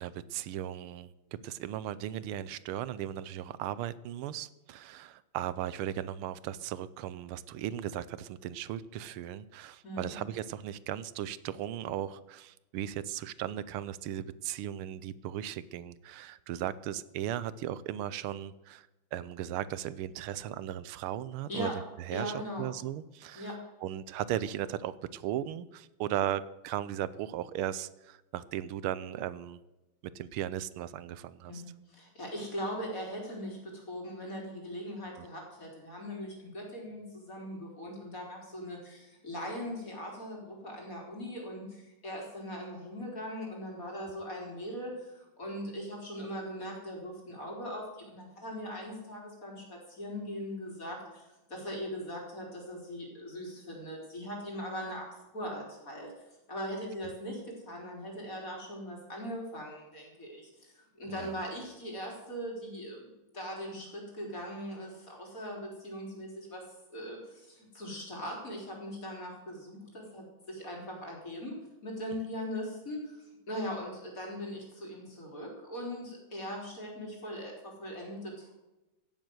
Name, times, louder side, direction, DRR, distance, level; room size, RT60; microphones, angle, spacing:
voice 1, 0.0-23.5 23.8-29.6 30.1-31.6 35.2-35.3 61.1-61.3, right 11 dB, 85° right, 17 dB, 1.5 m, -37 dB
voice 2, 9.8-10.2 21.5-21.8 22.1-22.7 23.3-23.6 31.5-55.1 55.3-56.1 56.5-66.6 66.9-71.5 71.8-78.5, equal, 40° left, -1 dB, 4.2 m, -40 dB
16.5 x 7.4 x 7.8 m, 1.0 s
omnidirectional pair, 2.3 m